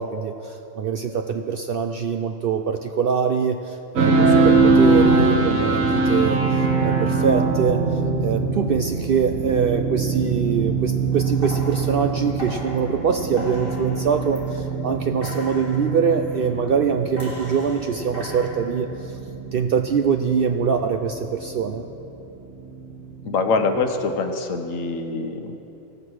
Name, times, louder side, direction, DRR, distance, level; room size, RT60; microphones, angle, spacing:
voice 1, 0.0-19.2 19.5-21.9, right 6 dB, 65° right, 6 dB, 0.5 m, -23 dB
sound 1, 4.0-23.9, right 3 dB, 90° right, 1.7 m, -23 dB
sound 2, 11.1-14.8 15.2-16.7 17.2-18.5, left 1 dB, 45° right, 2.7 m, -38 dB
voice 2, 23.2-25.6, left 4 dB, 75° left, 7 dB, 1.3 m, -24 dB
17.0 x 6.7 x 6.2 m, 3.0 s
omnidirectional pair, 1.4 m